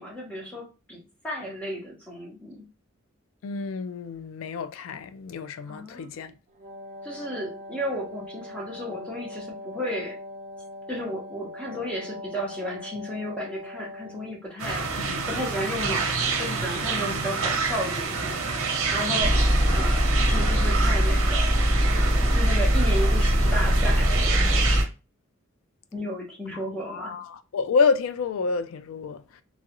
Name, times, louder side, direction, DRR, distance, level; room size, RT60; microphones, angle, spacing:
voice 1, 0.0-2.7 5.7-6.1 7.0-10.2 10.9-14.9 15.3-18.4 18.9-19.4 19.7-21.5 22.3-24.1 25.9-27.2, equal, 5° left, 0.9 m, -33 dB
voice 2, 3.4-6.3 15.0-15.2 17.0-17.2 19.1-19.4 26.5-29.4, left 5 dB, 70° left, 0.3 m, -29 dB
Wind instrument woodwind instrument, 6.5-14.5, left 1 dB, 35° right, 0.7 m, -41 dB
sound 1, 14.6-24.8, right 4 dB, 80° right, 0.7 m, -28 dB
Aircraft, 19.2-24.8, equal, 45° left, 1.0 m, -21 dB
3.0 x 2.4 x 2.9 m
head